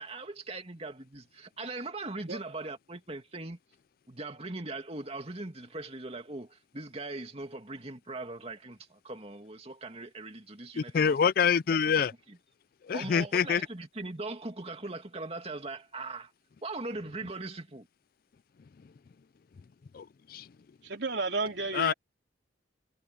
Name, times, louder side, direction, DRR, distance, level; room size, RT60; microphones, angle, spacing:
voice 1, 0.0-3.6 4.1-11.2 11.7-11.8 12.3-12.4 12.9-16.3 16.6-17.9, right 2 dB, 35° right, 2.5 m, -40 dB
voice 2, 10.8-12.1 12.9-13.6 19.9-20.5 21.7-21.9, left 7 dB, 50° left, 0.4 m, -26 dB
voice 3, 20.8-21.9, right 3 dB, 70° right, 3.6 m, -32 dB
head